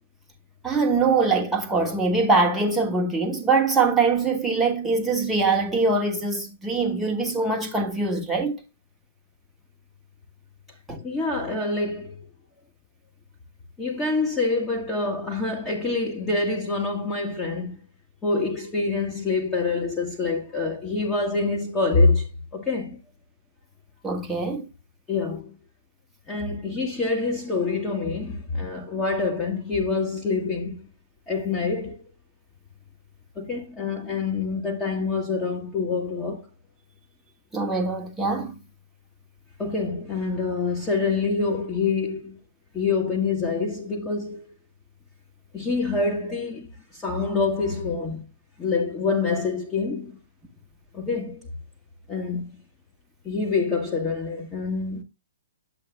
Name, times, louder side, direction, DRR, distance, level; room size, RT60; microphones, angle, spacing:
voice 1, 0.6-8.6 10.9-11.0 24.0-24.7 37.5-38.6, right 3 dB, 5° right, 1.3 m, -23 dB
voice 2, 11.0-12.3 13.8-17.8 18.2-23.0 25.1-25.6 26.3-30.9 31.3-32.1 33.3-36.5 39.6-42.4 42.7-44.5 45.5-48.2 48.6-50.2 50.9-51.5 52.1-52.5 53.2-55.0, left 4 dB, 15° left, 1.5 m, -26 dB
10.5 x 7.7 x 2.5 m
figure-of-eight pair, 120°, 0 cm